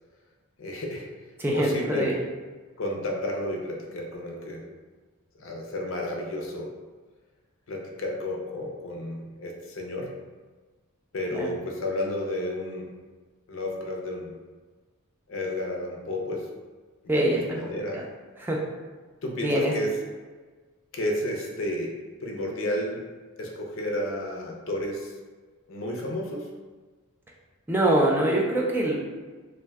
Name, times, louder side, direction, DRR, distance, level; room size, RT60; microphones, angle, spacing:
voice 1, 0.6-1.1 1.5-2.1 2.8-4.6 5.4-6.7 7.7-10.1 11.1-12.9 13.5-14.3 15.3-16.5 17.0-18.0 19.2-19.9 20.9-23.0 23.4-25.1 25.7-26.5, left 1 dB, 65° left, 0 dB, 0.5 m, -31 dB
voice 2, 1.4-2.2 11.3-11.5 17.1-18.0 18.4-18.6 19.4-19.7 27.7-29.0, right 1 dB, 10° right, -2 dB, 0.3 m, -24 dB
2.6 x 2.1 x 3.3 m, 1.4 s
head